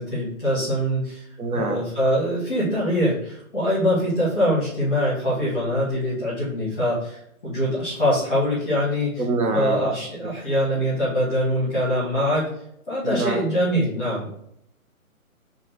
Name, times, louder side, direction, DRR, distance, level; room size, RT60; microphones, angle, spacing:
voice 1, 0.0-1.3 1.5-9.1 9.5-12.5 12.9-14.3, equal, 5° left, -10 dB, 0.9 m, -23 dB
voice 2, 1.4-1.8 6.2-6.3 9.2-9.9 13.0-13.4, right 3 dB, 85° right, 4 dB, 0.9 m, -25 dB
4.0 x 2.5 x 3.2 m, 0.73 s
hypercardioid pair, 175°, 43 cm